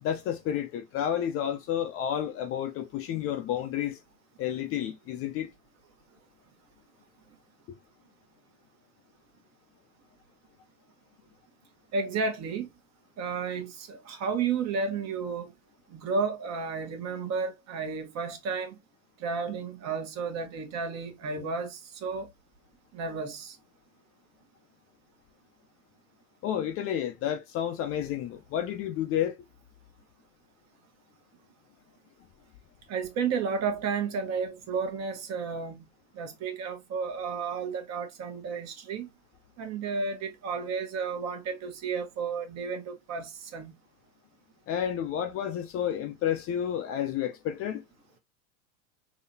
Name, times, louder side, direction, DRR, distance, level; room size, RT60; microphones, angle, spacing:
voice 1, 0.0-4.0 4.4-5.5 26.4-29.4 44.7-47.8, left 10 dB, 35° left, 0.5 m, -30 dB
voice 2, 11.9-12.7 13.2-15.5 15.9-18.8 19.2-22.3 22.9-23.6 32.9-35.9 36.1-39.1 39.6-43.7, right 5 dB, 40° right, 1.1 m, -32 dB
3.9 x 2.8 x 2.6 m
hypercardioid pair, 110°, 43 cm